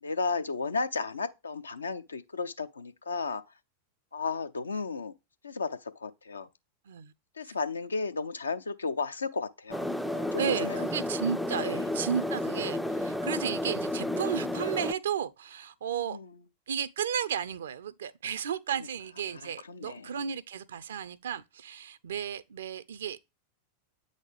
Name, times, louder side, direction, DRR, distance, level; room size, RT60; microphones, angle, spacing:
voice 1, 0.0-3.4 4.1-5.1 5.4-6.5 7.4-10.9 11.5-11.9 16.1-16.4 19.3-20.1, left 4 dB, 75° left, 0.6 m, -34 dB
sound 1, 9.7-14.9, left 1 dB, ahead, 0.4 m, -32 dB
voice 2, 10.4-16.2 16.7-23.2, right 8 dB, 65° right, 0.6 m, -33 dB
8.3 x 4.1 x 3.4 m
figure-of-eight pair, 90°, 0 cm